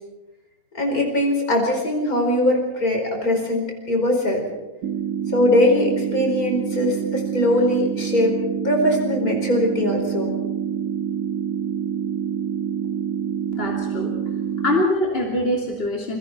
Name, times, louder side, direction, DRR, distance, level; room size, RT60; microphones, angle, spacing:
voice 1, 0.7-4.4 5.3-8.4 8.6-10.3, left 1 dB, 70° left, 1 dB, 5.4 m, -21 dB
sound 1, 4.8-14.8, right 8 dB, 70° right, 1.4 m, -27 dB
voice 2, 13.5-14.1 14.6-16.2, left 1 dB, 40° left, -1 dB, 3.4 m, -23 dB
28.0 x 23.5 x 4.5 m, 1.1 s
omnidirectional pair, 1.6 m